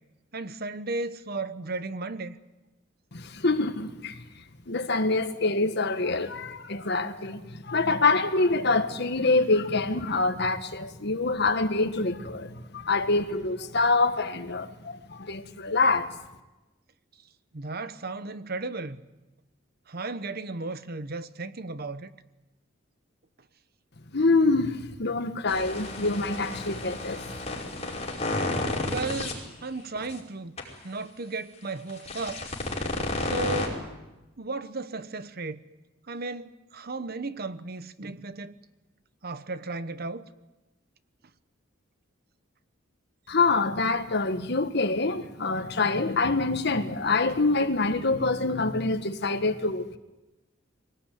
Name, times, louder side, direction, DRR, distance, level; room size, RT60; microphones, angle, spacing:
voice 1, 0.3-2.4 17.5-19.0 19.9-22.1 28.9-29.4 29.6-30.5 30.8-32.5 33.2-33.8 34.4-35.6 36.1-38.5 39.2-40.3, right 3 dB, 50° right, 1.0 m, -34 dB
voice 2, 3.1-4.2 4.7-16.1 24.1-27.7 43.3-50.0, left 3 dB, 60° left, 1.5 m, -26 dB
sound 1, 25.5-29.3 30.0-30.1 30.6-30.7 31.9-33.7, left 2 dB, 35° left, 5.2 m, -32 dB
23.0 x 18.5 x 9.3 m
head